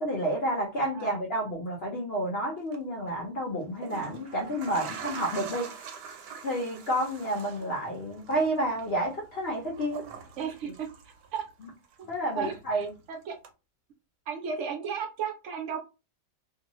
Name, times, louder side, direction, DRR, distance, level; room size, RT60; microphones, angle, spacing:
voice 1, 0.0-5.7 6.4-10.0 12.1-12.9, right 1 dB, 55° left, -2 dB, 0.7 m, -30 dB
sound 1, 2.6-2.8 3.6-11.6 11.9-13.0 13.4-13.5, right 6 dB, 85° right, 1.2 m, -44 dB
voice 2, 10.4-11.5 12.0-12.1 12.3-13.4 14.3-15.8, right 7 dB, 70° right, 4 dB, 0.7 m, -35 dB
2.6 x 2.4 x 2.9 m, 0.29 s
omnidirectional pair, 1.8 m